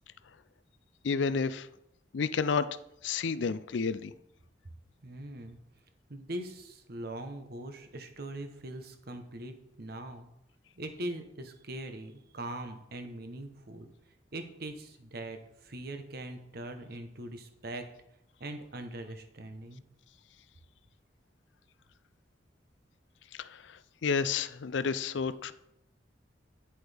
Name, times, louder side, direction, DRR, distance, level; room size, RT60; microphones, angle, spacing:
voice 1, 1.0-1.7 2.1-2.7 3.0-4.1 24.0-25.5, left 5 dB, 75° left, 14 dB, 0.4 m, -30 dB
voice 2, 5.0-5.6 6.1-10.3 10.8-13.9 14.3-17.8 18.4-19.8, right 1 dB, 55° right, 7 dB, 1.1 m, -41 dB
10.0 x 7.8 x 3.5 m, 0.79 s
head